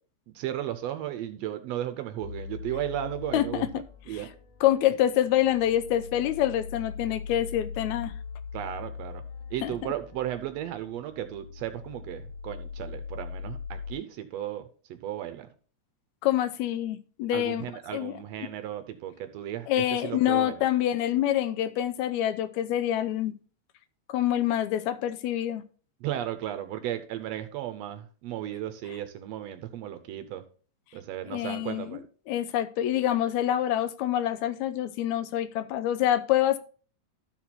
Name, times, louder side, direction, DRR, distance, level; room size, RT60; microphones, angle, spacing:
voice 1, 0.3-3.7 4.1-4.3 8.5-9.2 9.5-15.5 17.3-20.6 26.0-30.4 30.9-32.0, right 12 dB, 75° right, 10 dB, 1.7 m, -35 dB
sound 1, 2.2-13.9, left 5 dB, 60° left, 2.3 m, -41 dB
voice 2, 3.3-3.8 4.1-4.3 4.6-8.1 9.6-9.7 16.2-17.6 17.9-18.2 19.7-23.4 24.1-25.6 31.3-32.0 32.3-36.6, left 12 dB, 80° left, 13 dB, 1.8 m, -26 dB
12.5 x 4.5 x 4.2 m, 0.40 s
omnidirectional pair, 3.3 m